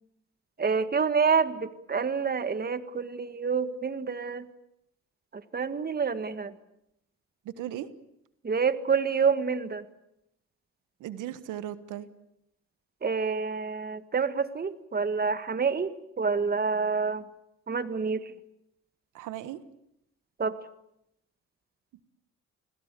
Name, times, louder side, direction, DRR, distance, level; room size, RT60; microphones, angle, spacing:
voice 1, 0.6-4.5 5.3-6.5 8.4-9.8 13.0-15.9 16.2-17.2 17.7-18.3 20.4-20.6, right 5 dB, 30° right, 11 dB, 1.8 m, -27 dB
voice 2, 7.4-7.9 11.0-12.1 19.1-19.6, right 12 dB, 90° right, 13 dB, 1.5 m, -37 dB
29.0 x 21.0 x 8.3 m, 0.81 s
cardioid pair, 90°, 30 cm